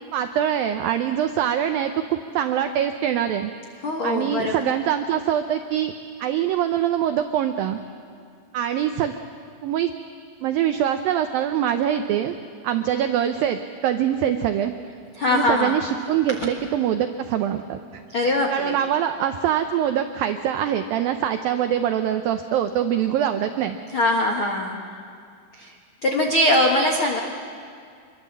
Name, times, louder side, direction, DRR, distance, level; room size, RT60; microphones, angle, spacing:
voice 1, 0.1-3.5 4.0-5.9 6.2-7.8 8.5-9.2 9.6-9.9 10.4-12.3 12.6-14.7 15.3-17.8 18.2-23.8, right 10 dB, 85° right, 7 dB, 2.0 m, -24 dB
voice 2, 3.8-4.7 15.2-15.7 18.1-18.8 23.9-24.9 25.5-25.7 26.0-27.2, left 1 dB, 75° left, 1 dB, 1.2 m, -22 dB
26.5 x 22.5 x 7.4 m, 2.3 s
omnidirectional pair, 5.1 m